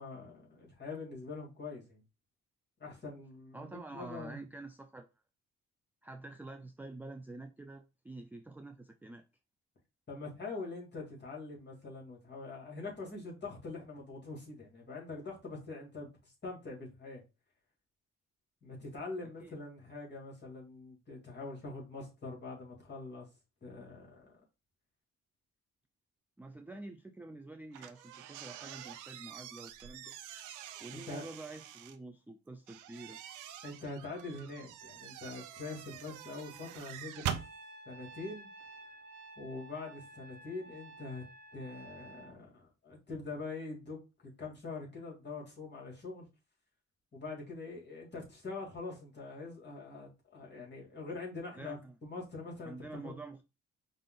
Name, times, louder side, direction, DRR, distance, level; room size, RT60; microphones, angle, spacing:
voice 1, 0.0-2.0 2.8-4.4 10.1-17.2 18.6-23.3 23.6-24.4 30.9-31.3 33.6-37.4 37.9-38.5 39.4-41.2 41.5-46.3 47.1-52.7 53.0-53.2, left 3 dB, 35° left, 2.5 m, -44 dB
voice 2, 3.5-5.1 6.0-9.2 19.2-19.5 26.4-30.1 30.8-33.2 51.6-52.0 52.7-53.4, right 2 dB, 5° right, 0.3 m, -48 dB
sound 1, 27.7-32.0 32.7-37.5, right 10 dB, 85° right, 0.6 m, -44 dB
Trumpet, 37.3-42.4, right 2 dB, 30° right, 1.3 m, -52 dB
5.2 x 2.5 x 3.8 m
cardioid pair, 90°, 30 cm